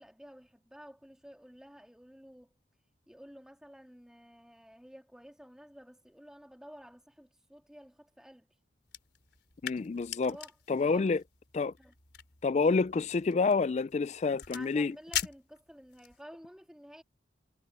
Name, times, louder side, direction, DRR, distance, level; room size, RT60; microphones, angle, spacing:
voice 1, 0.0-2.6 3.1-8.5 10.2-10.5 10.8-11.1 11.8-11.9 14.5-17.0, equal, 5° right, 2.5 m, -52 dB
sound 1, 8.8-16.2, left 10 dB, 65° left, 3.5 m, -43 dB
voice 2, 9.6-10.4 10.7-11.2 11.5-11.7 12.4-14.9, left 4 dB, 35° left, 0.3 m, -28 dB
head